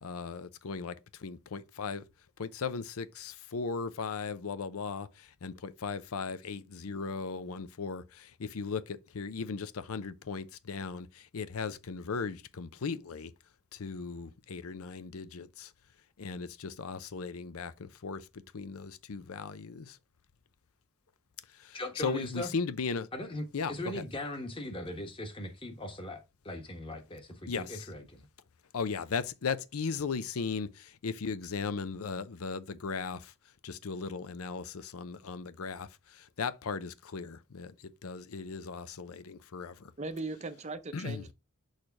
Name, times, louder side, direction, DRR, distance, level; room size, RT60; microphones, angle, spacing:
voice 1, 0.0-2.0 2.4-13.3 13.7-15.7 16.2-18.3 18.5-20.0 21.5-23.1 23.5-24.0 27.5-27.8 28.7-33.3 33.6-39.9 40.9-41.2, left 5 dB, 75° left, 0.6 m, -37 dB
voice 2, 21.7-22.5 23.1-28.3, left 1 dB, 25° left, 1.3 m, -39 dB
voice 3, 40.0-41.3, right 3 dB, 30° right, 0.6 m, -38 dB
6.5 x 3.2 x 5.8 m
head